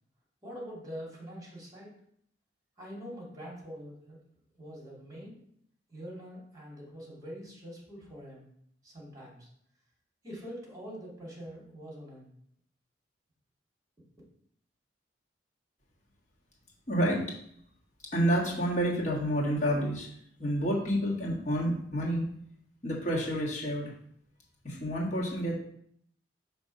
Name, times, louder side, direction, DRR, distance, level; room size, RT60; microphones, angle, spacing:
voice 1, 0.4-1.9 2.8-4.2 4.5-5.4 5.9-8.5 8.8-9.5 10.2-12.3, equal, 20° right, -4 dB, 2.2 m, -44 dB
voice 2, 16.9-17.2 18.1-20.1 20.4-22.2 22.8-23.9 24.6-25.5, equal, 40° left, -4 dB, 1.6 m, -29 dB
5.2 x 3.4 x 5.3 m, 0.69 s
head